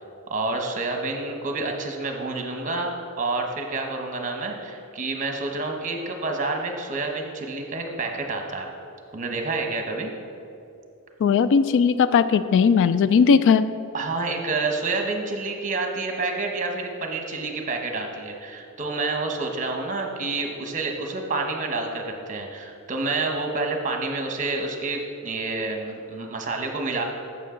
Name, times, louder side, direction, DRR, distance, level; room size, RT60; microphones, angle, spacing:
voice 1, 0.3-8.7 9.1-10.1 13.9-27.0, right 3 dB, 35° right, 3 dB, 1.1 m, -28 dB
voice 2, 11.2-13.7, left 6 dB, 55° left, 13 dB, 0.3 m, -18 dB
11.5 x 7.6 x 3.8 m, 2.7 s
head